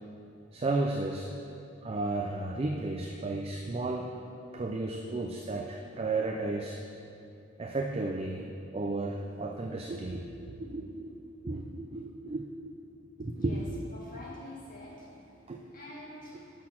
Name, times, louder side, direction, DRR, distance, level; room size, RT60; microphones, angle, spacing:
voice 1, 0.5-1.3 1.8-4.2 4.5-6.8 7.6-8.5 8.7-12.5 13.2-13.6 15.5-15.6 16.3-16.4, right 2 dB, 30° right, 1 dB, 0.4 m, -33 dB
voice 2, 13.9-15.4 15.7-16.5, left 1 dB, 45° left, -5 dB, 1.9 m, -46 dB
6.3 x 6.1 x 5.9 m, 2.7 s
head